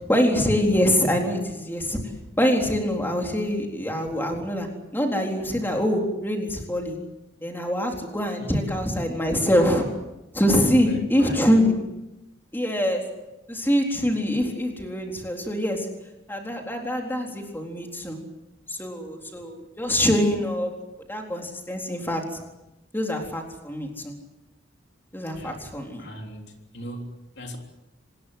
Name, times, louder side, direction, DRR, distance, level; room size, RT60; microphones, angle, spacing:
voice 1, 0.1-2.0 2.4-4.7 4.9-7.0 7.4-9.9 10.3-11.8 12.5-13.1 13.5-15.9 16.3-18.2 18.7-20.7 21.1-22.2 22.9-24.1 25.1-26.0, equal, 10° left, 2 dB, 3.9 m, -24 dB
voice 2, 8.4-8.9 10.7-11.4 25.3-25.7 26.0-27.6, equal, 65° left, 3 dB, 3.6 m, -39 dB
26.5 x 20.5 x 8.2 m, 0.94 s
head